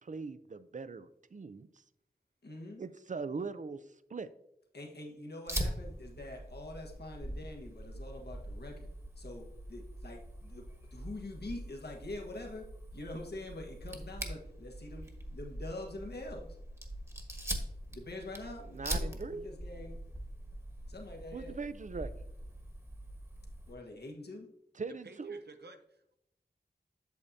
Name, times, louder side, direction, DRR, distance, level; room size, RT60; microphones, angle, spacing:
voice 1, 0.0-1.7 2.8-3.8 4.1-4.3 18.7-19.5 21.3-22.1 24.7-25.4, right 4 dB, 50° right, 14 dB, 0.5 m, -40 dB
voice 2, 2.4-2.8 4.7-8.9 9.2-10.6 10.9-12.6 12.9-16.6 17.9-20.0 20.9-21.6 23.7-24.5, left 2 dB, 80° left, 0 dB, 1.3 m, -45 dB
Fire, 5.5-23.7, right 1 dB, 15° right, 1.3 m, -42 dB
voice 3, 24.9-26.2, right 3 dB, 80° right, 7 dB, 0.8 m, -54 dB
8.3 x 7.0 x 2.7 m, 0.79 s
wide cardioid pair, 50°, 17 cm